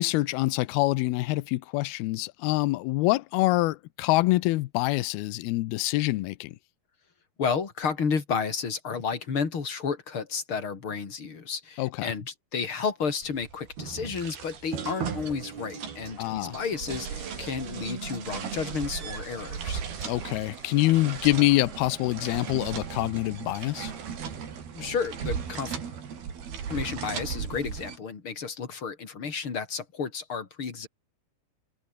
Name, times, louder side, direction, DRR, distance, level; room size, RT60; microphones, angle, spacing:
voice 1, 0.0-6.6 11.8-12.1 16.2-16.6 20.0-23.9, left 19 dB, 90° left, 2.7 m, -25 dB
voice 2, 7.4-19.8 24.7-25.8 26.7-30.9, left 5 dB, 35° left, 3.6 m, -32 dB
sound 1, 13.2-28.0, right 7 dB, 75° right, 5.7 m, -36 dB
omnidirectional pair, 4.4 m